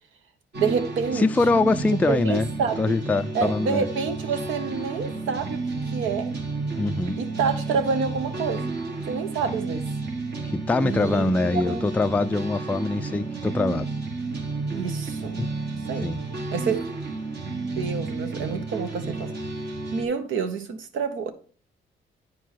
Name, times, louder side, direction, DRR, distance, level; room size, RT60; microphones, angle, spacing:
sound 1, 0.5-20.0, right 3 dB, 60° right, 1.9 m, -32 dB
voice 1, 0.5-1.3 1.9-3.0 3.3-5.6 5.9-6.3 7.2-8.7 9.1-9.8 10.8-11.8 14.7-15.4 15.9-16.1 16.5-16.9 17.8-19.3 19.9-21.3, right 5 dB, 80° right, 1.1 m, -28 dB
voice 2, 1.1-2.5 2.8-3.9 6.8-7.2 10.5-13.9 15.4-15.5 16.0-16.2, left 3 dB, 10° left, 0.3 m, -23 dB
9.3 x 4.6 x 4.2 m
cardioid pair, 90°, 20 cm